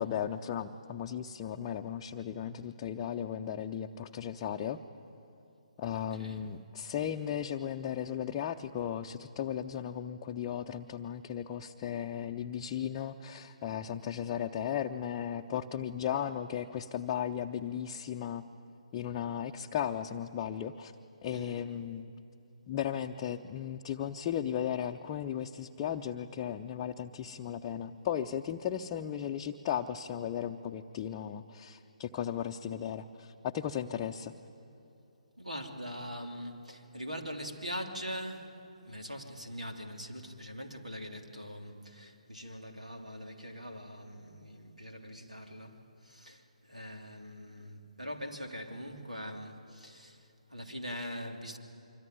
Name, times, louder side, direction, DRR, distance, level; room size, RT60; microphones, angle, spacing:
voice 1, 0.0-4.8 5.8-18.4 18.9-20.9 21.2-22.1 22.7-34.3, left 9 dB, 25° left, 2 dB, 0.7 m, -36 dB
voice 2, 35.4-51.6, equal, 85° right, 3 dB, 3.1 m, -42 dB
25.5 x 25.0 x 9.4 m, 2.9 s
figure-of-eight pair, 135°, 4 cm